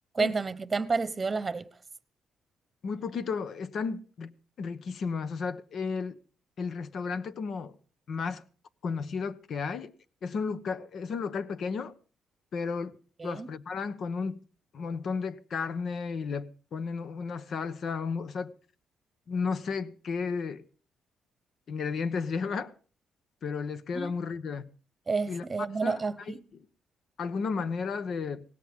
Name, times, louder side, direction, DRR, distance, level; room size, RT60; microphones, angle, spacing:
voice 1, 0.1-1.7 13.2-13.5 23.9-24.3 25.1-26.4, right 4 dB, 25° right, 1.1 m, -30 dB
voice 2, 2.8-6.2 6.6-7.7 8.1-8.4 8.8-9.9 10.2-11.9 12.5-12.9 13.2-14.4 14.7-18.5 19.3-20.6 21.7-22.7 23.4-24.7 25.3-26.0 26.3-26.4 27.2-28.4, left 5 dB, 60° left, 1.1 m, -33 dB
18.5 x 17.0 x 3.7 m
cardioid pair, 90°, 0 cm